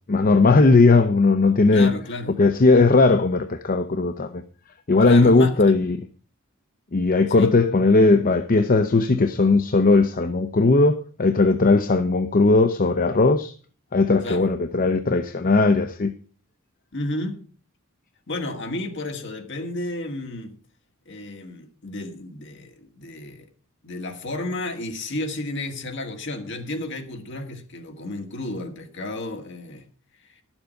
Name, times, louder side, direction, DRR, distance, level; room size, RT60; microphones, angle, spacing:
voice 1, 0.1-1.9 2.4-4.4 4.9-6.1 6.9-13.5 13.9-16.1, left 3 dB, 40° left, 0.6 m, -18 dB
voice 2, 1.7-2.3 5.0-5.5 7.3-7.5 14.2-14.5 16.9-17.4 18.3-20.5 21.1-23.5 23.8-29.9, left 2 dB, 60° left, 1.9 m, -32 dB
11.5 x 7.2 x 6.4 m
head